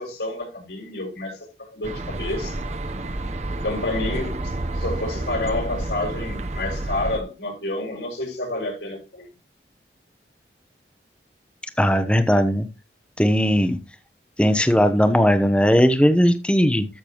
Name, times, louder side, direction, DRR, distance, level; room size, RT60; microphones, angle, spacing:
voice 1, 0.0-2.6 3.6-9.3, left 2 dB, 75° left, 6.2 m, -29 dB
sound 1, 1.8-7.2, right 2 dB, 40° right, 0.8 m, -29 dB
voice 2, 11.8-12.7 13.2-13.8 14.4-16.9, equal, 5° left, 0.9 m, -18 dB
13.5 x 6.8 x 3.0 m
head